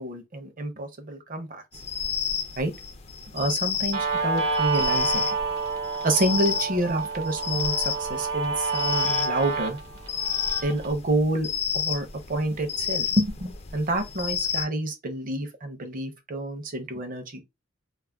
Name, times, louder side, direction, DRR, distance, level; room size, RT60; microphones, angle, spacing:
voice 1, 0.0-1.6 2.6-2.7 3.3-5.3 6.0-9.8 10.6-11.5 11.7-17.4, right 1 dB, 40° right, 0.6 m, -28 dB
sound 1, 1.7-14.6, left 7 dB, 30° left, 0.3 m, -30 dB
Guitar, 3.9-10.9, right 4 dB, 75° right, 0.9 m, -28 dB
2.3 x 2.0 x 3.3 m
head